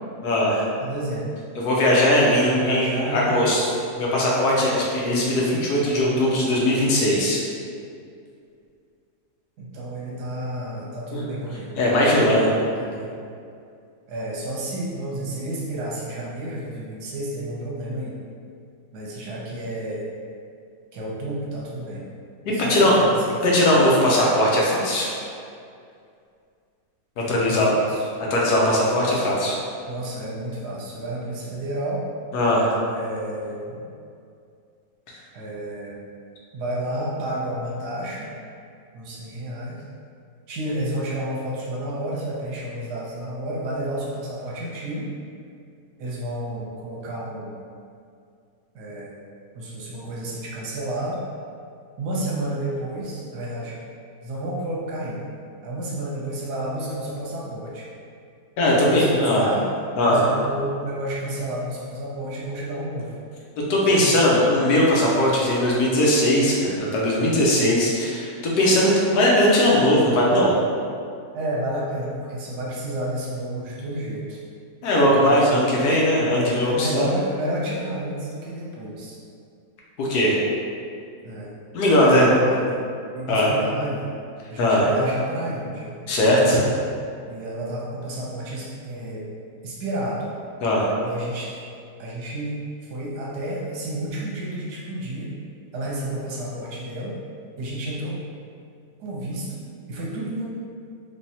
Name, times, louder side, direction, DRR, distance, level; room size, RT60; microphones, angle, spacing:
voice 1, 0.2-0.7 1.6-3.6 4.0-7.4 11.1-11.2 11.8-12.5 22.4-23.0 23.4-25.1 27.2-27.7 28.3-29.6 32.3-32.7 58.6-59.5 60.0-60.3 63.7-68.3 68.6-70.5 74.8-77.1 80.0-80.4 81.7-82.3 83.3-83.5 84.6-84.8 86.1-86.6 90.6-90.9, left 1 dB, 80° left, -4 dB, 1.3 m, -19 dB
voice 2, 0.8-1.3 2.4-3.7 5.7-6.3 9.6-11.8 12.8-13.1 14.1-18.2 18.9-20.1 20.9-22.0 22.5-23.7 27.2-28.1 28.5-29.3 29.9-32.0 32.9-33.8 35.3-36.0 36.5-38.3 38.9-39.8 40.5-45.1 46.0-47.6 48.7-49.1 49.5-51.2 52.0-53.8 54.2-55.3 55.6-57.9 58.7-59.6 60.0-63.2 63.8-64.3 71.3-74.4 75.0-76.0 76.3-79.2 81.2-81.6 82.0-82.8 83.1-84.1 84.5-86.0 87.3-89.3 89.6-90.2 91.0-91.5 92.0-92.6 92.9-95.3 95.7-97.1 97.6-98.2 99.0-100.4, right 1 dB, 85° right, -5 dB, 1.3 m, -31 dB
3.3 x 3.3 x 2.7 m, 2.4 s
omnidirectional pair, 1.7 m